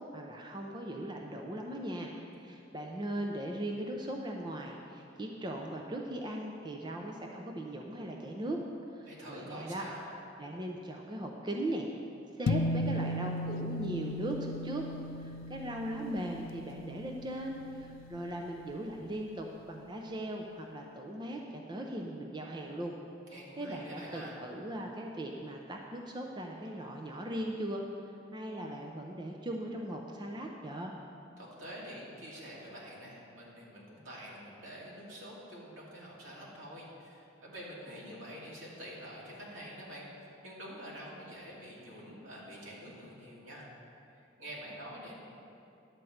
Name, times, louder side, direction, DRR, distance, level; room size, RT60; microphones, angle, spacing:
voice 1, 0.1-8.6 8.9-9.9 10.4-11.9 12.4-14.8 15.2-22.9 23.6-27.8 28.3-30.9, right 1 dB, 25° right, 1 dB, 0.5 m, -39 dB
voice 2, 9.0-10.1 23.3-24.4 31.4-43.7 44.4-45.1, equal, 80° right, -5 dB, 2.5 m, -47 dB
sound 1, 12.5-19.0, left 1 dB, 85° left, 0.4 m, -37 dB
10.5 x 4.5 x 7.8 m, 2.7 s
head